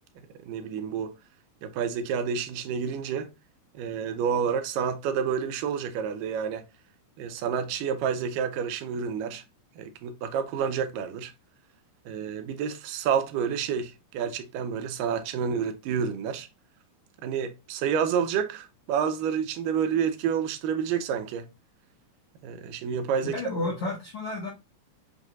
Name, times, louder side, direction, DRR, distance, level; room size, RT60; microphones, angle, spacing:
voice 1, 0.5-1.2 1.6-3.3 3.8-6.6 7.2-9.4 9.8-11.3 12.1-16.5 17.2-21.5 22.4-23.4, right 7 dB, 85° right, 2.2 m, -29 dB
voice 2, 23.3-24.5, left 2 dB, 75° left, 1.3 m, -31 dB
6.2 x 2.7 x 2.3 m
omnidirectional pair, 3.8 m